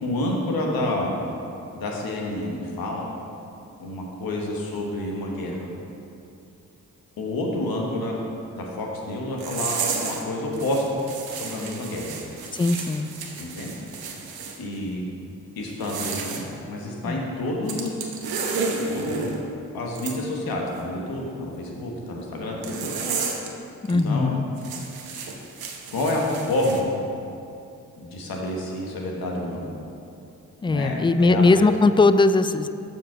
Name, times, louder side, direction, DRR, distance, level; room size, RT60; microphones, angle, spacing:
voice 1, 0.0-1.2 1.7-3.1 3.8-5.6 7.2-8.2 8.5-9.8 10.0-11.0 11.3-12.1 13.4-13.7 14.6-15.1 15.6-17.9 18.9-19.3 19.7-22.9 23.9-24.3 25.9-26.9 28.0-29.7 30.6-31.7, left 1 dB, 85° left, -1 dB, 1.2 m, -28 dB
sound 1, 9.4-10.2 10.5-14.6 15.7-16.4 17.7-19.4 20.0-20.2 22.6-23.5 23.8-24.0 24.6-26.8, right 4 dB, 90° right, 0.8 m, -31 dB
voice 2, 12.5-13.1 17.0-17.2 23.8-24.5 30.6-32.7, left 3 dB, 15° left, 12 dB, 0.3 m, -19 dB
7.2 x 5.0 x 6.0 m, 2.6 s
supercardioid pair, 40°, 35 cm